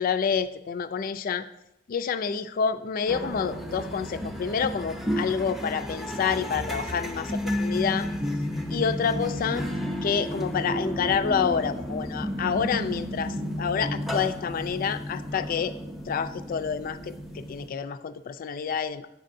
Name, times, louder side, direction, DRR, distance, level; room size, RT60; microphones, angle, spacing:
voice 1, 0.0-1.5 1.9-8.1 8.7-9.7 10.0-15.7 16.1-19.1, left 6 dB, 50° left, 13 dB, 0.3 m, -28 dB
sound 1, 3.1-17.7, equal, ahead, 0.6 m, -32 dB
8.0 x 6.5 x 2.6 m, 0.85 s
head